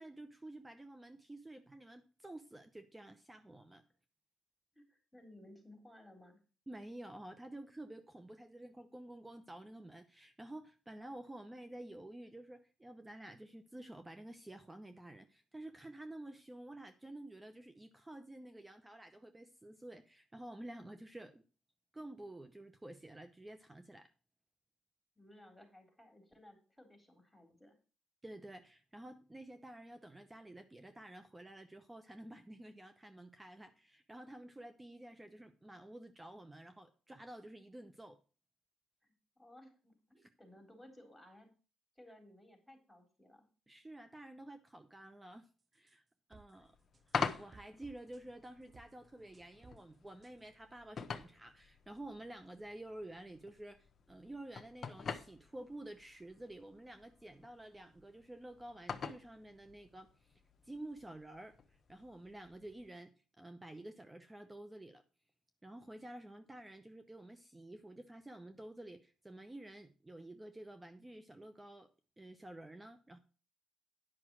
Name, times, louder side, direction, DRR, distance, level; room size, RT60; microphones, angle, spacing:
voice 1, 0.0-3.8 6.7-21.4 21.9-24.1 28.2-38.2 40.2-40.3 43.7-46.0 46.3-46.8 47.1-65.0 65.6-71.9 72.2-73.2, right 1 dB, 15° right, 9 dB, 0.8 m, -51 dB
voice 2, 4.8-6.4 25.2-27.8 39.0-41.5 42.0-43.5, left 1 dB, 5° left, 3 dB, 3.7 m, -59 dB
sound 1, 45.7-46.0 46.3-46.5 46.9-47.2 47.5-48.5 48.7-48.9 49.3-49.8 50.2-50.5, right 5 dB, 35° right, 0.5 m, -60 dB
sound 2, 46.6-62.9, left 6 dB, 45° left, 1.0 m, -46 dB
10.0 x 5.9 x 6.1 m, 0.36 s
cardioid pair, 90°, 0 cm